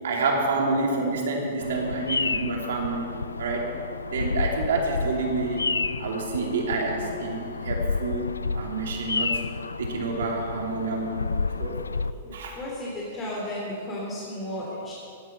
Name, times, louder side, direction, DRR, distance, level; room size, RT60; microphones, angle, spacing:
voice 1, 0.0-3.1 3.4-3.7 4.0-5.7 6.0-9.4 9.8-11.2 11.6-11.8 12.3-12.6, right 3 dB, 65° right, 1 dB, 3.0 m, -28 dB
Bird vocalization bird call bird song, 1.6-12.1, left 4 dB, 85° left, 0.4 m, -30 dB
voice 2, 12.2-14.9, left 1 dB, 20° left, -6 dB, 3.6 m, -34 dB
17.0 x 11.5 x 5.8 m, 2.7 s
figure-of-eight pair, 110°, 0 cm